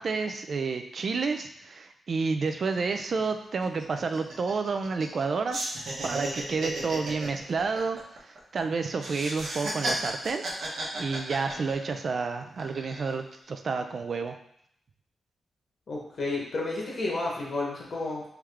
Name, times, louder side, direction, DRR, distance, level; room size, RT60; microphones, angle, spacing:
voice 1, 0.0-5.6 6.0-10.4 11.0-14.4, right 4 dB, 50° right, 6 dB, 0.3 m, -30 dB
sound 1, 2.7-2.8 3.1-3.3 3.6-5.2 5.5-8.6 9.0-12.1 12.5-13.1, right 1 dB, 75° right, 0.9 m, -34 dB
voice 2, 15.9-18.2, left 2 dB, 50° left, -2 dB, 1.1 m, -31 dB
3.6 x 3.1 x 3.4 m, 0.71 s
wide cardioid pair, 130°, 0 cm